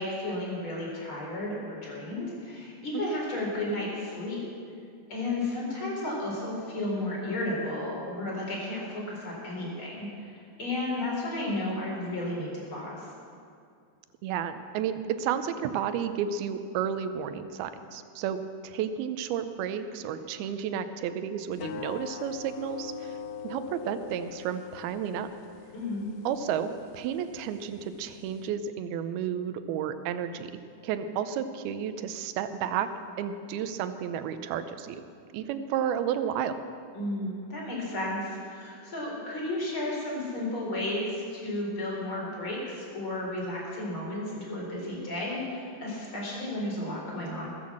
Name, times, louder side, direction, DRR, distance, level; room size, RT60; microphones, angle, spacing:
voice 1, 0.0-4.4 5.1-10.1 10.3-13.1 25.7-26.1 36.9-47.5, left 1 dB, 30° left, -4 dB, 4.4 m, -33 dB
voice 2, 14.2-23.2 23.4-25.3 26.3-30.5 30.8-32.9 33.2-35.0 35.3-36.6, right 8 dB, 80° right, 10 dB, 2.6 m, -32 dB
sound 1, 21.5-28.5, left 7 dB, 80° left, 2.4 m, -43 dB
20.5 x 8.6 x 7.3 m, 2.3 s
omnidirectional pair, 4.6 m